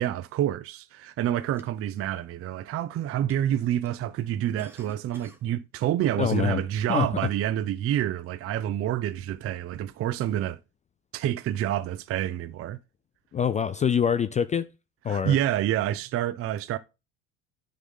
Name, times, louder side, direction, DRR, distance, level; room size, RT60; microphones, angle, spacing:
voice 1, 0.0-10.6 11.1-12.8 15.1-16.8, right 12 dB, 35° right, 0.6 m, -28 dB
sound 1, 1.4-2.1 2.7-3.0 3.3-3.4 3.9-4.0 4.4-5.5 6.0-6.1 7.3-7.4 8.1-8.3, right 2 dB, 5° right, 1.6 m, -52 dB
voice 2, 6.2-6.6 6.9-7.1 13.3-14.7 15.0-15.3, left 8 dB, 20° left, 0.3 m, -25 dB
9.8 x 3.8 x 5.5 m
hypercardioid pair, 75°, 41 cm